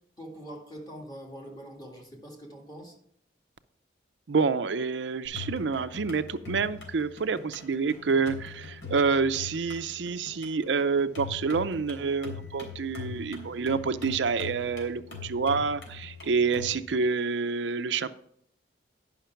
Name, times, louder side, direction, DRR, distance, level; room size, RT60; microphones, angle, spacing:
voice 1, 0.2-2.9, equal, 20° left, 1.9 m, -43 dB
voice 2, 4.3-18.1, right 5 dB, 85° right, 0.5 m, -28 dB
sound 1, 5.2-16.7, left 5 dB, 90° left, 3.4 m, -42 dB
10.0 x 5.8 x 5.8 m
head